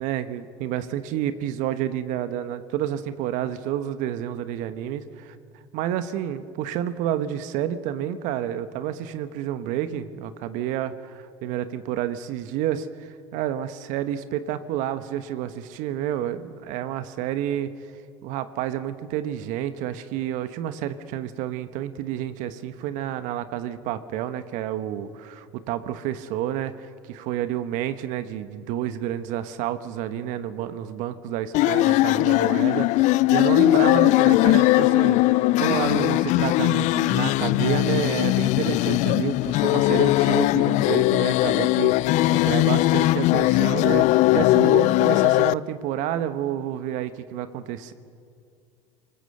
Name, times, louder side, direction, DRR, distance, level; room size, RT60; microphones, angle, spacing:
voice 1, 0.0-5.3 5.7-17.7 18.2-47.9, right 11 dB, 65° right, 11 dB, 1.2 m, -29 dB
sound 1, 31.5-45.5, left 18 dB, 60° left, 0.5 m, -20 dB
24.5 x 19.5 x 7.9 m, 2.3 s
hypercardioid pair, 80°, 14 cm